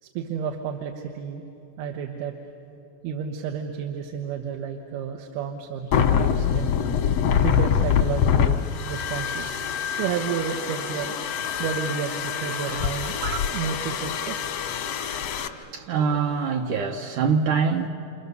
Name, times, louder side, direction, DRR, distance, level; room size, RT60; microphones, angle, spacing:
voice 1, 0.0-1.4 1.8-2.3 3.0-6.7 7.4-9.6 9.9-11.2 11.6-14.4, right 7 dB, 85° right, 3 dB, 3.0 m, -31 dB
sound 1, 5.9-15.5, left 8 dB, 75° left, 1.5 m, -25 dB
voice 2, 15.3-17.9, right 6 dB, 70° right, 2 dB, 2.0 m, -25 dB
29.5 x 27.0 x 6.8 m, 2.9 s
omnidirectional pair, 4.4 m